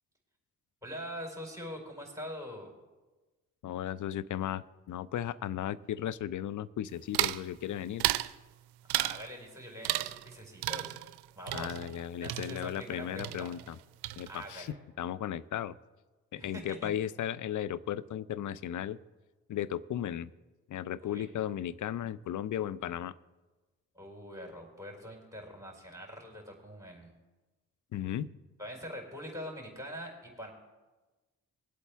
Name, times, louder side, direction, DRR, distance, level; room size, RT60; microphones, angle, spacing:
voice 1, 0.8-2.7 8.9-10.9 11.3-11.8 12.2-13.5 14.3-14.8 16.3-16.9 21.0-21.3 23.9-27.1 28.6-30.5, equal, 5° right, 0 dB, 4.3 m, -44 dB
voice 2, 3.6-8.0 11.5-13.8 14.2-15.7 16.3-19.0 19.5-20.3 20.7-23.1 27.9-28.3, left 10 dB, 45° left, 18 dB, 0.6 m, -35 dB
sound 1, 7.1-7.5 8.0-8.3 8.9-9.3 9.8-10.3 10.6-12.9 13.2-13.8 14.0-14.6, right 16 dB, 65° right, 0.6 m, -33 dB
21.5 x 8.2 x 3.4 m, 1.2 s
hypercardioid pair, 40°, 42 cm